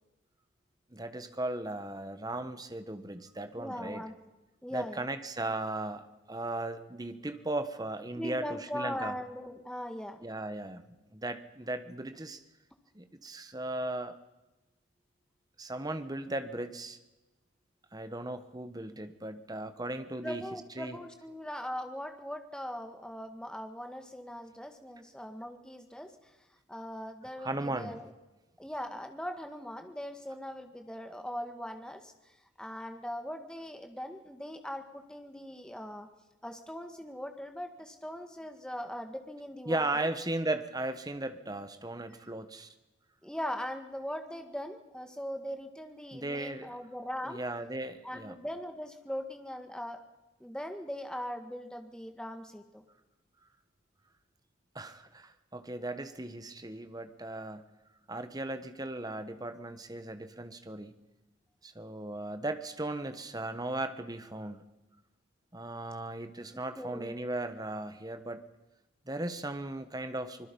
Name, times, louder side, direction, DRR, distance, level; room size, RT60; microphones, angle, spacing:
voice 1, 0.9-4.1 4.7-9.1 10.2-12.4 12.9-14.2 15.6-17.0 17.9-20.4 20.8-21.0 27.4-28.0 39.7-42.7 46.1-46.8 47.2-48.4 54.7-57.7 58.1-61.0 61.6-64.6 65.5-68.4 69.1-70.5, right 2 dB, 20° right, 10 dB, 1.2 m, -37 dB
voice 2, 3.6-4.2 4.6-5.1 8.2-10.3 20.2-26.1 26.7-28.1 28.6-32.1 32.6-36.1 36.4-40.1 43.2-47.4 48.0-50.0 50.4-52.8 66.8-67.1, equal, 5° left, 6 dB, 1.7 m, -40 dB
25.0 x 21.0 x 5.4 m, 1.0 s
head